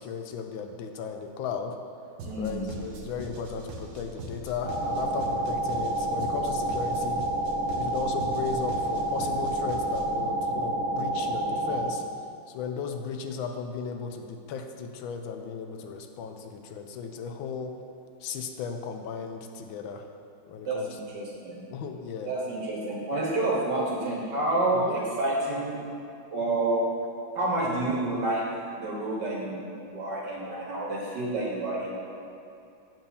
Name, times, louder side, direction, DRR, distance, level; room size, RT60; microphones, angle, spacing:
voice 1, 0.0-1.7 2.4-7.2 7.7-12.0 12.5-17.7 18.2-20.0 20.5-21.2 21.7-22.3 24.7-25.0, left 6 dB, 80° left, 5 dB, 1.4 m, -36 dB
voice 2, 2.2-2.7 20.6-21.6 22.2-25.8 26.3-26.8 27.3-28.5 28.7-32.0, right 2 dB, 60° right, -3 dB, 1.7 m, -29 dB
sound 1, 2.2-10.2, right 2 dB, 75° right, 1.6 m, -42 dB
sound 2, 4.6-11.9, right 1 dB, 15° right, 1.4 m, -29 dB
7.6 x 4.6 x 6.9 m, 2.7 s
omnidirectional pair, 2.2 m